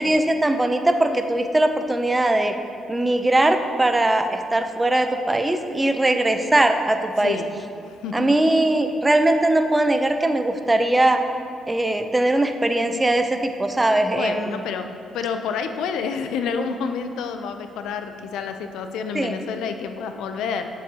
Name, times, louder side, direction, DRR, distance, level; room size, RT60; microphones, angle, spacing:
voice 1, 0.0-2.5 2.9-7.4 8.1-11.2 11.7-14.6 19.1-19.3, right 1 dB, 15° right, 7 dB, 0.5 m, -20 dB
voice 2, 7.8-8.4 14.2-14.9 15.1-20.7, left 6 dB, 85° left, 7 dB, 0.4 m, -29 dB
9.8 x 6.9 x 2.8 m, 2.4 s
cardioid pair, 90°, 0 cm